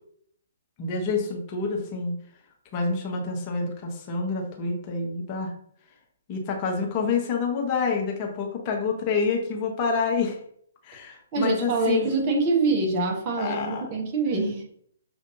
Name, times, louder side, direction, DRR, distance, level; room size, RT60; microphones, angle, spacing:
voice 1, 0.8-2.2 2.7-5.5 6.3-10.4 10.8-12.1 13.4-13.8, left 4 dB, 30° left, 1 dB, 0.8 m, -27 dB
voice 2, 11.3-14.6, right 3 dB, 30° right, 1 dB, 1.0 m, -25 dB
6.2 x 2.6 x 2.7 m, 0.65 s
figure-of-eight pair, 125°, 0 cm